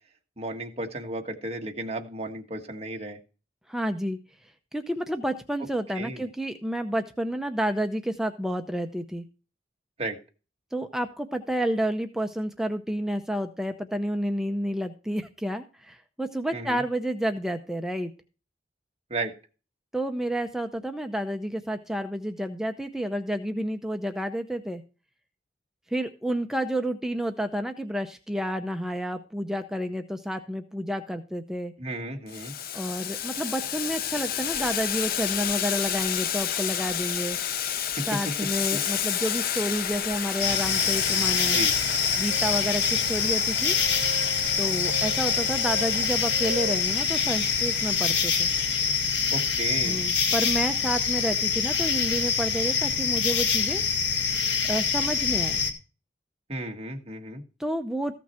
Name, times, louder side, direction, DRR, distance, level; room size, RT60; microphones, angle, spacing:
voice 1, 0.4-3.2 5.9-6.2 10.0-10.2 16.5-16.8 19.1-19.3 31.8-32.5 37.9-38.0 38.7-38.8 41.4-41.7 49.3-50.1 56.5-57.4, right 2 dB, 35° right, 2 dB, 1.5 m, -33 dB
voice 2, 3.7-4.2 4.7-9.3 10.7-18.1 19.9-24.8 25.9-31.7 32.7-37.4 38.1-41.6 42.2-43.8 44.6-48.5 49.8-53.8 54.7-55.6 57.6-58.1, equal, 5° right, 6 dB, 0.6 m, -30 dB
Boiling, 32.3-49.1, left 9 dB, 55° left, 0.6 m, -31 dB
sound 1, 40.4-55.7, left 6 dB, 85° left, 1.6 m, -25 dB
Wind instrument woodwind instrument, 42.3-46.9, right 2 dB, 55° right, 2.4 m, -40 dB
14.5 x 6.0 x 4.3 m, 0.34 s
head